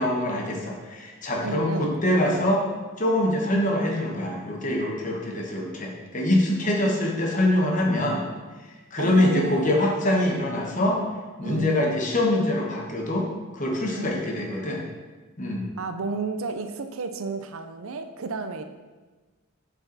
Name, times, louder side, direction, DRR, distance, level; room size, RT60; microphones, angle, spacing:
voice 1, 0.0-2.6 3.0-8.2 8.6-11.0 11.4-14.8 15.4-15.6, left 1 dB, 35° left, 0 dB, 1.2 m, -24 dB
voice 2, 1.4-2.0 9.0-10.4 11.4-12.0 13.9-14.2 15.8-18.6, right 4 dB, 70° right, 8 dB, 0.5 m, -32 dB
7.1 x 6.0 x 4.1 m, 1.3 s
head